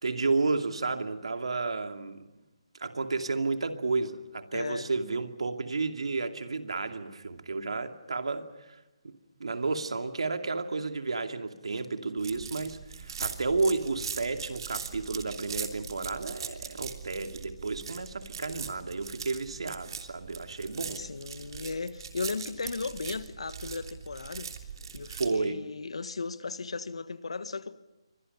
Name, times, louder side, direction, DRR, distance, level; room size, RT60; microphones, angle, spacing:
voice 1, 0.0-2.3 2.8-8.8 9.0-21.0 25.2-25.6, right 3 dB, 75° right, 2.6 m, -32 dB
voice 2, 4.5-4.9 21.0-24.5 24.9-27.8, left 4 dB, 75° left, 1.6 m, -36 dB
sound 1, 12.2-25.3, right 6 dB, 50° right, 3.2 m, -41 dB
29.0 x 24.5 x 5.6 m
hypercardioid pair, 155°, 3 cm